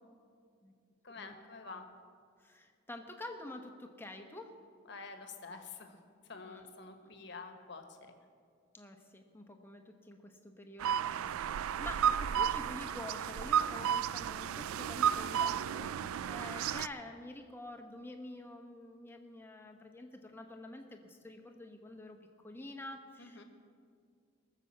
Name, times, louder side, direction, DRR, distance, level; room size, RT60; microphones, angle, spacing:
voice 1, 1.0-1.8 4.9-6.0 6.3-7.8 10.9-11.3 23.2-23.4, left 4 dB, 55° left, 5 dB, 1.2 m, -48 dB
voice 2, 2.4-4.5 6.4-6.7 7.0-7.1 8.7-16.0 16.3-22.2 22.4-23.4, left 2 dB, 10° left, 4 dB, 0.9 m, -48 dB
sound 1, 10.8-16.9, right 8 dB, 85° right, 0.3 m, -33 dB
18.5 x 7.0 x 7.4 m, 2.2 s
head